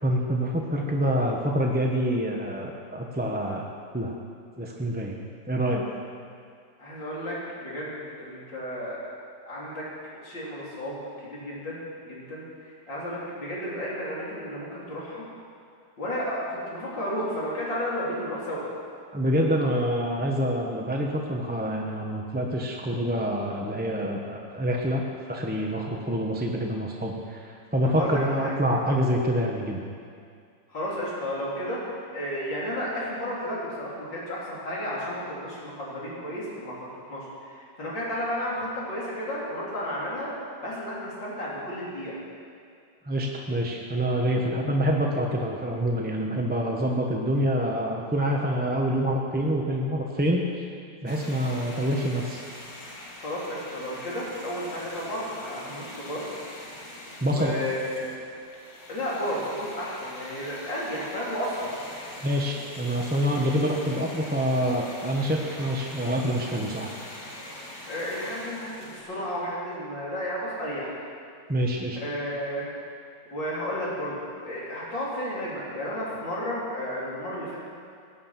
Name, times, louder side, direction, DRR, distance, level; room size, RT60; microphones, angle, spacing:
voice 1, 0.0-3.7 3.9-4.1 4.6-5.2 5.5-5.9 19.1-25.0 25.3-29.8 43.0-50.7 51.0-52.4 57.2-57.6 62.2-66.9 71.5-72.0, equal, 10° right, 0 dB, 0.7 m, -26 dB
voice 2, 6.8-9.0 9.5-9.8 10.1-15.3 16.0-18.6 27.8-28.5 30.7-31.8 32.1-40.3 40.6-42.2 53.2-56.3 57.3-58.1 58.9-61.8 67.9-71.0 72.0-72.7 73.3-74.2 74.4-77.6, equal, 85° left, -7 dB, 4.4 m, -32 dB
sound 1, 51.1-69.0, left 1 dB, 70° left, 2.6 m, -43 dB
17.0 x 9.7 x 6.0 m, 2.3 s
omnidirectional pair, 1.9 m